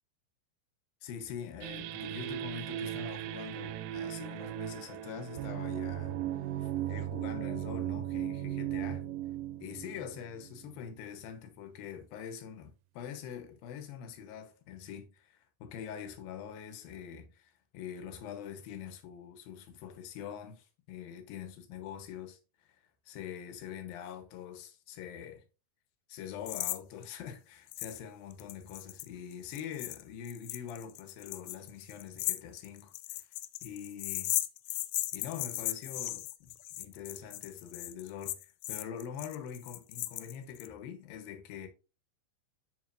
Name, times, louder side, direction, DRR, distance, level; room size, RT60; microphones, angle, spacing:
voice 1, 1.0-6.2 6.6-9.1 9.6-22.4 23.1-25.4 26.1-33.2 33.6-34.3 35.1-41.7, left 8 dB, 75° left, 2.7 m, -44 dB
sound 1, 1.6-11.0, right 12 dB, 80° right, 2.2 m, -37 dB
sound 2, 26.5-26.8 27.0-27.1 27.7-28.0 28.3-40.7, left 16 dB, 90° left, 1.9 m, -37 dB
7.4 x 6.9 x 2.6 m
omnidirectional pair, 4.5 m